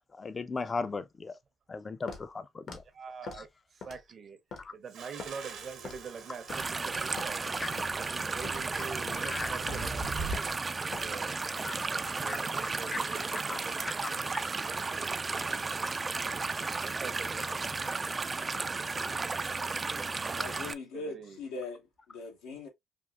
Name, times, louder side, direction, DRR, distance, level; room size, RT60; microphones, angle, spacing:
voice 1, 0.0-1.4 1.7-2.8 4.6-4.7 7.6-7.7 9.2-9.5 11.6-11.7 12.3-13.0 13.5-13.6 13.9-14.0, left 4 dB, 35° left, 0.5 m, -37 dB
Walk footsteps, 2.1-2.3 2.7-2.8 3.3-3.4 3.8-4.1 4.5-4.7 5.2-5.3 5.9-6.1 6.5-6.7 7.2-7.3 7.8-8.0 8.4-8.7 9.1-9.2 9.7-9.9 10.3-10.5 10.9-11.1, left 4 dB, 60° left, 1.0 m, -43 dB
voice 2, 2.9-4.4 4.7-7.5 8.0-11.4 11.7-14.0 14.6-14.8 16.8-17.9 20.9-21.4, right 6 dB, 50° right, 0.7 m, -45 dB
sound 1, 4.9-10.4, right 3 dB, 75° right, 1.1 m, -43 dB
sound 2, 6.5-20.7, right 4 dB, 30° right, 0.3 m, -34 dB
voice 3, 20.3-21.8 22.1-22.7, left 3 dB, 90° left, 1.1 m, -40 dB
3.5 x 2.4 x 2.3 m
supercardioid pair, 65°, 0 cm